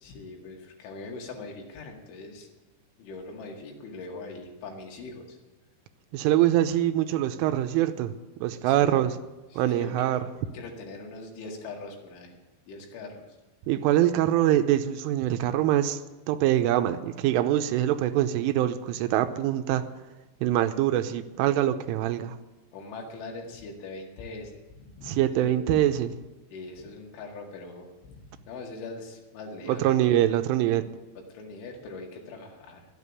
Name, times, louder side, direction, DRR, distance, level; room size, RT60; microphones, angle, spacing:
voice 1, 0.0-2.5 3.0-5.4 8.7-9.1 9.5-10.2 10.5-12.4 12.7-13.4 22.7-25.5 26.5-29.9 31.2-32.9, left 3 dB, 75° left, 0 dB, 4.4 m, -41 dB
voice 2, 6.1-8.1 8.4-9.1 9.6-10.2 13.7-16.0 16.3-19.8 20.4-22.4 25.1-26.1 29.6-30.9, right 12 dB, 90° right, 9 dB, 3.3 m, -24 dB
12.5 x 8.9 x 9.8 m, 1.1 s
omnidirectional pair, 5.6 m